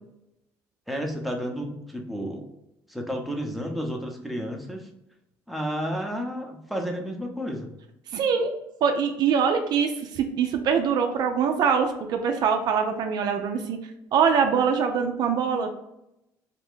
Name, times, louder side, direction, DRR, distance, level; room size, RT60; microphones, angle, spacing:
voice 1, 0.9-2.4 2.9-4.9 5.5-7.7, equal, ahead, 1 dB, 0.6 m, -31 dB
voice 2, 8.1-8.5 8.8-13.8 14.1-15.7, right 6 dB, 60° right, 5 dB, 0.4 m, -23 dB
2.5 x 2.1 x 3.5 m, 0.86 s
supercardioid pair, 80°, 8 cm